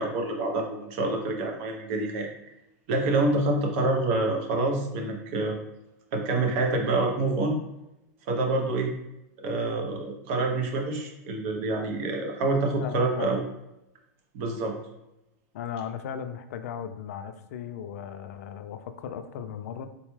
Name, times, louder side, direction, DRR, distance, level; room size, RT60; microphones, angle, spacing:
voice 1, 0.0-2.3 2.9-5.6 6.1-7.6 8.3-8.9 9.4-13.4 14.3-14.8, right 2 dB, 50° right, 2 dB, 0.7 m, -27 dB
voice 2, 12.8-13.3 15.5-19.9, left 8 dB, 75° left, 9 dB, 0.3 m, -37 dB
3.9 x 2.2 x 3.0 m, 0.90 s
supercardioid pair, 160°, 8 cm